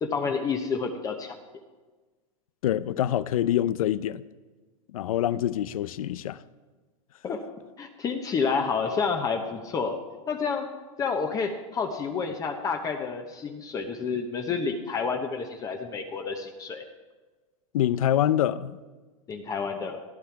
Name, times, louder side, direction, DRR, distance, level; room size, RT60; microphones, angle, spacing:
voice 1, 0.0-1.4 7.2-7.4 7.8-10.0 10.3-10.7 11.0-16.8 19.3-20.0, left 5 dB, 20° left, 5 dB, 1.0 m, -29 dB
voice 2, 2.6-4.2 4.9-6.4 17.7-18.7, left 11 dB, 90° left, 17 dB, 0.6 m, -25 dB
15.5 x 14.0 x 4.7 m, 1.3 s
supercardioid pair, 155°, 18 cm